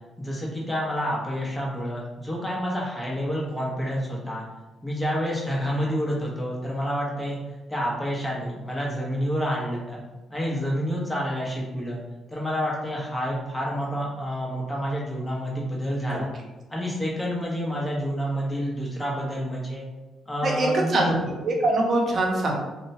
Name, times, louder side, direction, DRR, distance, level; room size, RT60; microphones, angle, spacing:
voice 1, 0.2-4.4 4.8-7.4 7.7-10.0 10.3-12.0 12.3-16.3 16.7-19.9 20.3-21.1, equal, 10° left, -4 dB, 0.8 m, -28 dB
voice 2, 20.4-22.5, right 2 dB, 50° right, -1 dB, 0.7 m, -23 dB
2.9 x 2.1 x 2.6 m, 1.1 s
cardioid pair, 90°, 0 cm